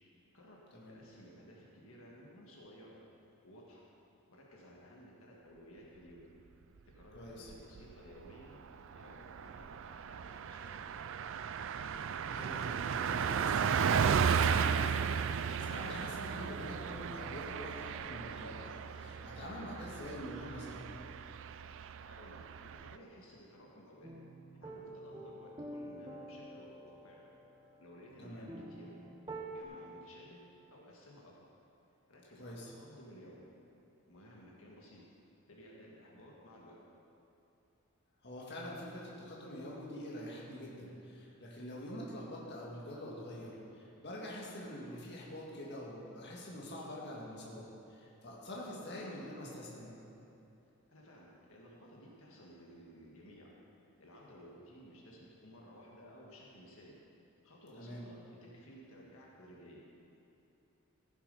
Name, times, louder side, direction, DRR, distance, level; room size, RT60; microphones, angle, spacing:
voice 1, 0.9-3.0 3.4-3.9 4.3-6.3 6.9-8.6 8.9-10.8 22.1-24.1 24.5-27.2 27.8-28.9 29.5-30.4 30.7-31.4 32.1-33.5 34.1-35.0 35.4-36.8 50.9-53.5 54.0-57.0 57.4-59.8, equal, 70° left, -3 dB, 1.8 m, -56 dB
voice 2, 7.1-7.5 12.3-20.8 28.2-28.5 32.4-32.7 38.2-50.0 57.8-58.1, left 1 dB, 55° left, -4 dB, 1.8 m, -45 dB
Car passing by, 7.3-7.9 8.3-8.4 8.7-23.0, right 7 dB, 60° right, 0.4 m, -35 dB
sound 1, 24.0-29.6, right 1 dB, 20° right, 0.9 m, -48 dB
15.0 x 7.1 x 5.4 m, 2.9 s
head